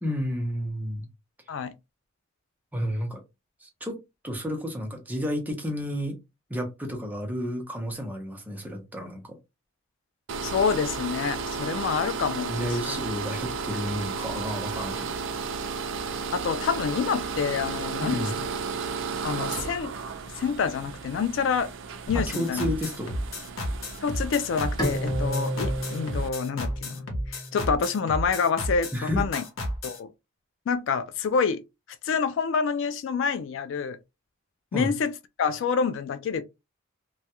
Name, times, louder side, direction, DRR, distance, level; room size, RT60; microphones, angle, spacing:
voice 1, 0.0-1.1 2.7-3.2 3.6-6.2 6.5-9.4 12.5-15.2 18.0-18.4 22.1-23.2 28.9-29.2 34.7-34.9, equal, 10° right, 0.5 m, -31 dB
sound 1, 10.3-26.3, right 5 dB, 65° right, 0.3 m, -34 dB
voice 2, 10.4-13.0 16.3-18.3 19.2-19.9 20.4-21.7 22.1-22.7 24.0-29.4 29.8-30.1 30.7-31.6 32.0-34.0 34.7-35.1 35.4-36.4, left 6 dB, 65° left, 0.3 m, -27 dB
sound 2, 22.1-30.0, equal, 85° left, 0.7 m, -32 dB
Bowed string instrument, 24.8-28.0, equal, 20° left, 0.7 m, -32 dB
2.2 x 2.0 x 2.8 m
head